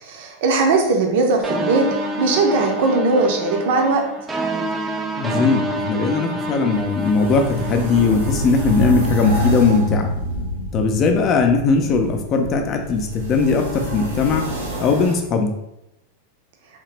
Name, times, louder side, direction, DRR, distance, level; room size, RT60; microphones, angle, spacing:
voice 1, 0.0-1.8 2.2-4.0, right 3 dB, 50° right, 2 dB, 0.7 m, -19 dB
sound 1, 1.4-9.1, right 1 dB, 15° right, 0.5 m, -28 dB
voice 2, 5.2-10.1 10.7-14.5 14.8-15.5, left 4 dB, 30° left, 5 dB, 0.5 m, -19 dB
sound 2, 6.7-15.2, equal, 80° right, 0.9 m, -27 dB
3.6 x 2.8 x 3.2 m, 0.86 s
figure-of-eight pair, 90°, 0 cm